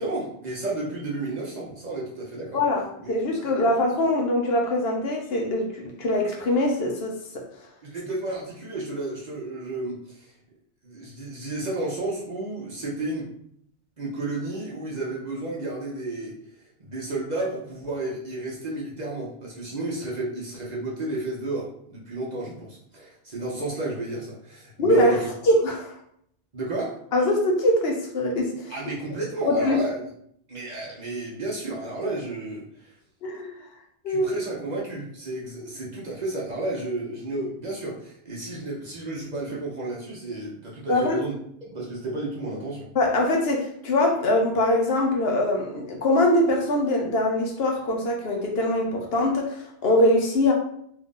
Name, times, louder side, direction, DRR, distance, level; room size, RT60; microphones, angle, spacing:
voice 1, 0.0-2.6 3.0-3.1 3.4-3.7 7.8-10.3 10.8-13.3 14.0-16.4 16.8-25.3 26.5-27.0 28.7-30.1 30.5-33.0 34.1-41.3 41.6-42.9, right 2 dB, 45° right, -4 dB, 0.7 m, -32 dB
voice 2, 2.5-7.4 24.8-25.2 25.5-25.9 27.1-28.5 29.5-29.8 33.2-33.5 34.0-34.4 40.9-41.2 43.0-50.5, left 1 dB, 65° left, 1 dB, 0.8 m, -23 dB
2.7 x 2.5 x 3.6 m, 0.69 s
omnidirectional pair, 1.2 m